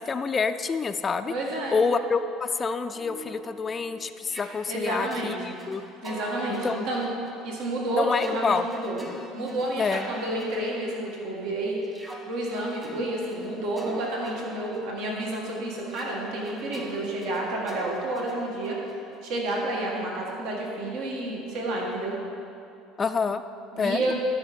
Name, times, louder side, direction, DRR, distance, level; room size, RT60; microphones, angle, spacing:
voice 1, 0.0-1.3 1.7-5.8 6.5-6.8 7.9-8.7 9.8-10.1 23.0-23.4 23.8-24.1, left 5 dB, 25° left, 8 dB, 0.3 m, -27 dB
voice 2, 1.3-1.8 4.7-5.4 6.0-7.1 7.4-9.0 9.3-11.8 12.3-18.8 19.2-22.2 23.7-24.1, right 1 dB, 70° right, -2 dB, 1.6 m, -30 dB
sound 1, 2.5-11.4 11.8-19.7, equal, 20° right, 1.4 m, -43 dB
12.5 x 5.5 x 5.1 m, 2.8 s
supercardioid pair, 115°, 0 cm